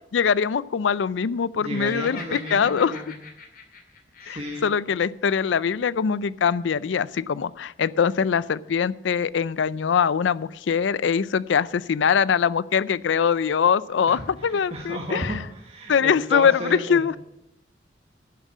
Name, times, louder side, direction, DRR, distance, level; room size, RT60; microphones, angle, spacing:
voice 1, 0.1-3.0 4.3-15.3 15.9-17.1, left 6 dB, 85° left, 19 dB, 0.4 m, -23 dB
voice 2, 1.6-3.2 4.2-4.7 14.1-17.2, right 1 dB, 35° right, 0 dB, 1.4 m, -34 dB
Laughter, 1.8-4.8, left 4 dB, 50° left, 2.3 m, -42 dB
10.5 x 7.3 x 8.3 m, 0.85 s
head